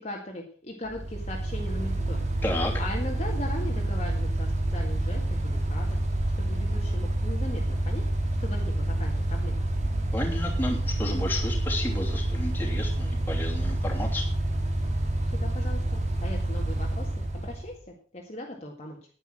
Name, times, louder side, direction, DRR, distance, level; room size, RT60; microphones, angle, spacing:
voice 1, 0.0-2.3 2.8-6.0 6.4-8.0 8.4-9.6 15.3-19.0, left 1 dB, 35° left, -1 dB, 1.9 m, -39 dB
Mechanical fan, 0.9-17.8, right 1 dB, 35° right, 2.0 m, -28 dB
voice 2, 2.4-2.7 10.1-14.2, left 1 dB, 10° left, -1 dB, 2.9 m, -32 dB
10.5 x 9.9 x 6.2 m, 0.42 s
head